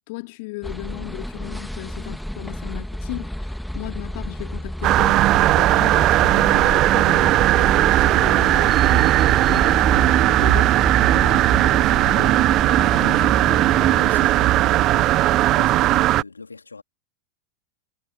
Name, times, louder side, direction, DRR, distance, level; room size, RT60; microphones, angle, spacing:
voice 1, 0.0-5.2 5.5-10.8 11.2-12.5 12.8-13.4, left 26 dB, 50° left, 2.4 m, -36 dB
sound 1, 0.6-14.0, equal, ahead, 2.6 m, -31 dB
sound 2, 4.8-16.2, right 16 dB, 35° right, 0.7 m, -17 dB
voice 2, 13.0-16.8, left 4 dB, 80° left, 3.4 m, -41 dB
figure-of-eight pair, 90°, 0 cm